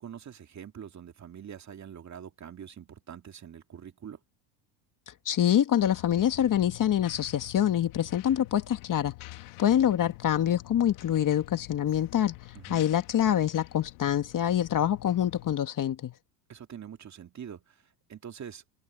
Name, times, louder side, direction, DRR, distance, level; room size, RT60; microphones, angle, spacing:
voice 1, 0.0-4.2 12.5-12.9 16.5-17.8 18.1-18.6, right 8 dB, 35° right, 2.5 m, -44 dB
voice 2, 5.3-9.1 9.6-12.4 12.7-16.1, left 10 dB, 40° left, 2.0 m, -25 dB
sound 1, 5.8-15.6, left 22 dB, 70° left, 2.6 m, -47 dB
open air
supercardioid pair, 90°, 50 cm